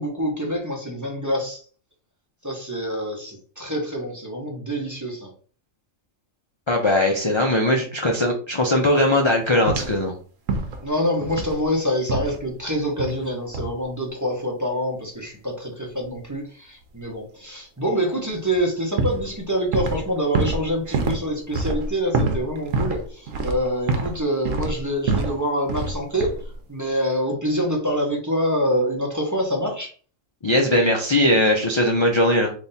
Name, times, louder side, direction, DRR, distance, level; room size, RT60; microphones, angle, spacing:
voice 1, 0.0-1.6 2.4-5.3 10.8-26.3 26.7-29.9, equal, 15° right, -1 dB, 0.7 m, -26 dB
voice 2, 6.7-10.1 30.4-32.5, left 1 dB, 40° left, 1 dB, 0.4 m, -19 dB
sound 1, 9.7-10.0 10.5-10.9 11.2-11.6 12.1-12.4 13.0-13.3 13.5-13.8 18.4-18.6 19.0-20.1 20.3-24.2 24.4-25.4 25.7-26.0 26.2-26.5, right 3 dB, 80° right, 1.1 m, -26 dB
3.5 x 2.7 x 4.1 m, 0.41 s
omnidirectional pair, 1.4 m